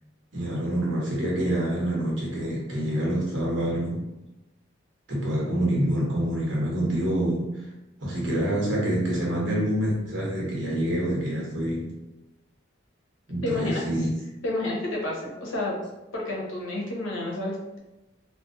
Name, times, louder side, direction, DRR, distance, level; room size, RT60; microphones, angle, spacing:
voice 1, 0.3-4.0 5.1-7.7 8.0-11.9 13.3-14.1, right 1 dB, 70° right, -4 dB, 0.9 m, -26 dB
voice 2, 13.4-13.8 14.4-15.8 16.1-17.8, left 2 dB, 85° left, -2 dB, 0.7 m, -30 dB
2.5 x 2.1 x 2.5 m, 0.98 s
head